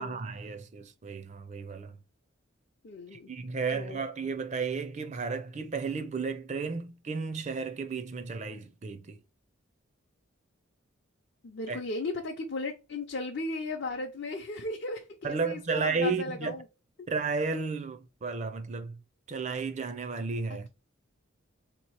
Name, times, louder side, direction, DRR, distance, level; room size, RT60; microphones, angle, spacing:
voice 1, 0.0-2.0 3.1-9.2 11.7-11.8 15.2-16.5 17.1-19.0 19.3-20.7, right 4 dB, 35° right, 0.4 m, -33 dB
voice 2, 2.8-3.3 3.7-4.0 11.4-16.6 17.0-17.1, left 2 dB, 55° left, 0.6 m, -36 dB
3.5 x 2.9 x 4.6 m
head